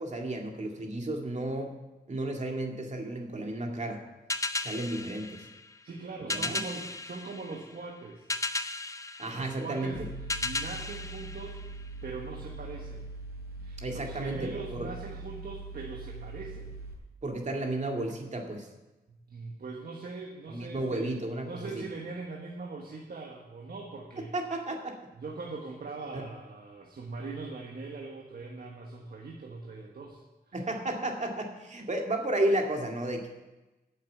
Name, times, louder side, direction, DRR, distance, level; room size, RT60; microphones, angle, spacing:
voice 1, 0.0-1.7 2.1-4.0 4.6-5.4 6.3-6.6 9.2-9.9 13.8-14.9 17.2-18.7 20.5-21.8 24.3-25.0 26.1-26.2 30.5-33.3, right 1 dB, 45° right, 2 dB, 2.2 m, -32 dB
sound 1, 4.3-12.2, left 2 dB, 20° left, 0.6 m, -36 dB
voice 2, 5.8-8.3 9.4-11.6 12.0-13.0 13.6-16.7 19.1-21.1 21.4-24.3 25.1-30.2 30.5-30.6, right 3 dB, 70° right, -1 dB, 1.4 m, -41 dB
Mechanical fan, 9.9-16.9, right 3 dB, 90° right, 4.5 m, -42 dB
9.3 x 7.4 x 8.5 m, 1.1 s
wide cardioid pair, 80°, 16 cm